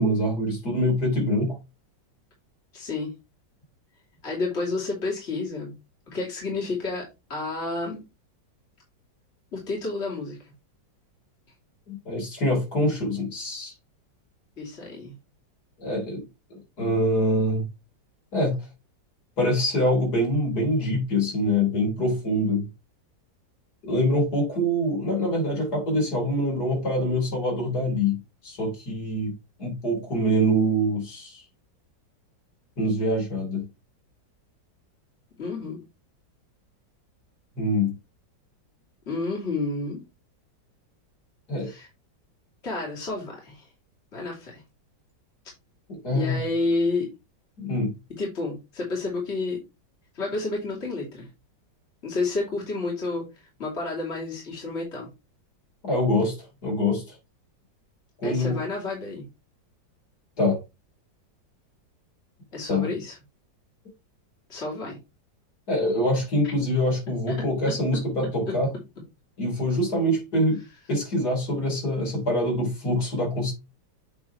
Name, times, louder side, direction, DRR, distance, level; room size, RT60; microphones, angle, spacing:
voice 1, 0.0-1.6 11.9-13.7 15.8-16.3 16.5-17.7 18.3-18.6 19.4-22.7 23.9-29.3 29.6-31.4 32.8-33.7 37.6-38.0 41.5-41.7 45.9-46.4 47.6-47.9 55.8-57.2 58.2-58.6 60.4-60.6 62.7-62.9 65.7-68.7 69.4-73.5, equal, 60° left, 4.1 m, -25 dB
voice 2, 2.7-3.1 4.2-5.7 6.1-8.0 9.5-10.5 14.6-15.2 35.4-35.8 39.1-40.0 41.6-41.9 42.6-43.7 44.1-44.6 46.1-47.1 48.2-49.6 50.1-51.3 52.0-55.1 58.2-59.3 62.5-63.2 64.5-65.0 67.3-67.4, left 3 dB, 35° left, 3.2 m, -30 dB
8.7 x 3.9 x 4.5 m
omnidirectional pair, 2.0 m